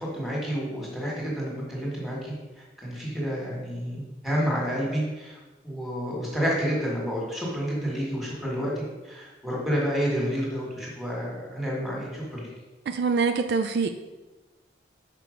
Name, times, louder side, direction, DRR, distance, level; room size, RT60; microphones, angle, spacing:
voice 1, 0.0-5.4 5.6-12.5, equal, ahead, -5 dB, 1.7 m, -30 dB
voice 2, 12.9-13.9, right 5 dB, 60° right, 7 dB, 0.4 m, -24 dB
6.0 x 4.6 x 5.1 m, 1.2 s
head